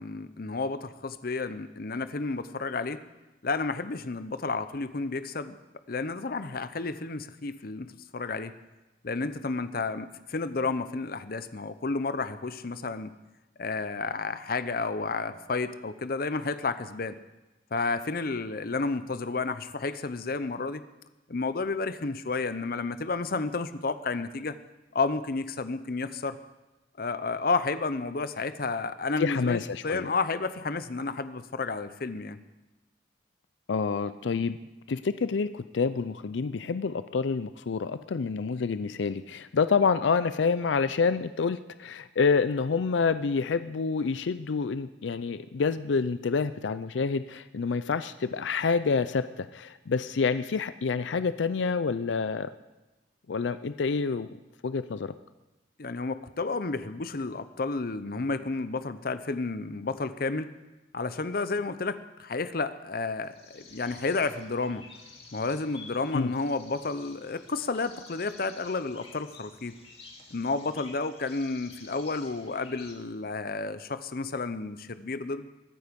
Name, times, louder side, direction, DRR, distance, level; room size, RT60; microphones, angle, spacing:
voice 1, 0.0-3.0 3.4-5.6 5.9-8.5 9.0-13.1 13.6-17.2 17.7-20.8 21.3-24.5 24.9-26.4 27.0-32.4 55.8-60.5 60.9-64.8 65.3-69.8 70.3-75.5, left 3 dB, 55° left, 12 dB, 0.7 m, -31 dB
voice 2, 29.2-30.1 33.7-34.6 34.9-52.5 53.3-54.3 54.6-55.1 66.1-66.3, left 5 dB, 85° left, 13 dB, 0.5 m, -28 dB
sound 1, 63.2-72.9, left 4 dB, 35° left, 2.5 m, -51 dB
22.5 x 9.5 x 5.2 m, 1.1 s
head